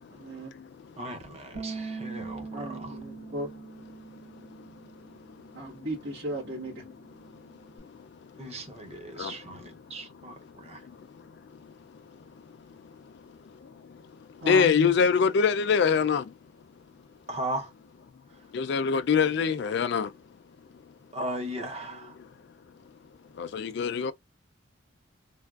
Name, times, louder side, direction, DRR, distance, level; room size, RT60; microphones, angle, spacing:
voice 1, 0.1-0.5 2.5-3.5 5.5-6.8 14.4-14.7, right 1 dB, 80° right, 1.3 m, -35 dB
voice 2, 1.0-2.5 2.8-2.9 8.4-10.8 17.3-17.7 21.1-22.1, right 1 dB, 30° right, 0.6 m, -37 dB
Bass guitar, 1.5-7.8, right 4 dB, 55° right, 2.1 m, -43 dB
voice 3, 14.5-16.2 18.5-20.1 23.4-24.1, left 6 dB, 60° left, 0.3 m, -23 dB
3.4 x 2.3 x 2.3 m
head